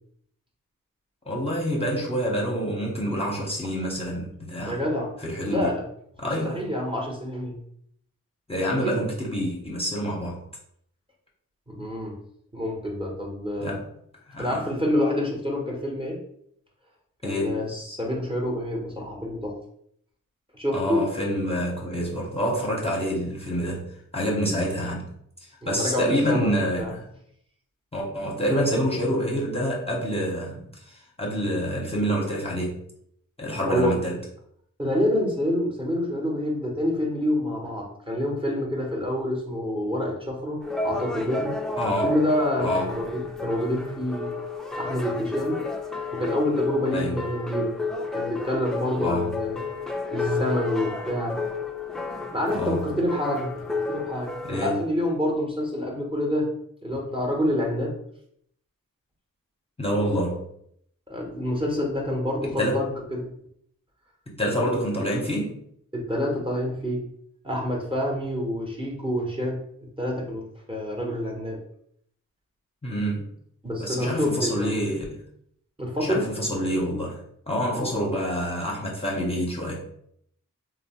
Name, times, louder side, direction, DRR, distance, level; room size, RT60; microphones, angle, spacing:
voice 1, 1.3-4.8 5.2-5.7 6.2-6.6 8.5-10.4 13.6-13.8 14.3-14.6 17.2-17.7 20.7-23.9 24.1-25.0 25.4-27.1 27.9-32.8 33.4-34.2 41.8-42.1 42.6-43.0 46.9-47.1 49.0-49.3 52.5-52.8 54.4-54.8 59.8-60.4 62.5-62.8 64.3-65.5 72.8-73.3 73.8-75.2 76.0-77.2 77.5-79.8, equal, 20° left, -3 dB, 0.7 m, -27 dB
voice 2, 4.7-5.1 5.5-5.9 6.4-7.6 8.7-9.0 11.7-12.2 12.5-13.8 14.4-16.2 17.2-19.6 20.5-21.0 25.6-27.0 33.7-34.0 34.8-41.6 42.0-44.3 44.8-45.6 46.1-47.7 48.1-49.6 50.1-51.4 52.3-53.5 53.9-56.5 56.8-57.9 61.1-63.3 65.9-67.0 67.4-69.6 70.0-71.6 73.6-74.7 75.8-76.3 77.7-78.1, left 1 dB, 15° right, -2 dB, 0.7 m, -27 dB
sound 1, 40.6-54.7, left 3 dB, ahead, 0.3 m, -31 dB
2.8 x 2.0 x 2.8 m, 0.68 s
cardioid pair, 45°, 33 cm